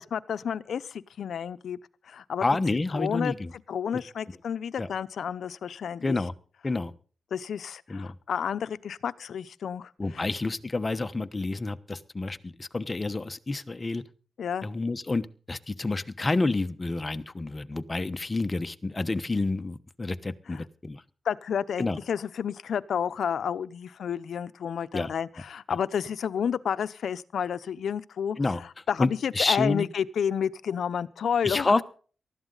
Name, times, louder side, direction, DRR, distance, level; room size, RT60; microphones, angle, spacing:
voice 1, 0.1-1.8 2.0-2.4 2.9-3.3 3.7-6.2 7.3-10.3 14.4-14.7 20.5-20.7 21.2-31.8, left 8 dB, 80° left, 16 dB, 0.8 m, -31 dB
voice 2, 2.4-3.5 4.8-4.9 6.0-6.3 6.6-6.9 7.9-8.1 10.0-14.0 14.6-21.0 21.8-22.0 24.9-25.1 28.4-28.6 29.0-29.9 31.4-31.8, left 3 dB, 25° left, 11 dB, 1.1 m, -29 dB
19.5 x 13.5 x 4.0 m, 0.40 s
wide cardioid pair, 105°, 0 cm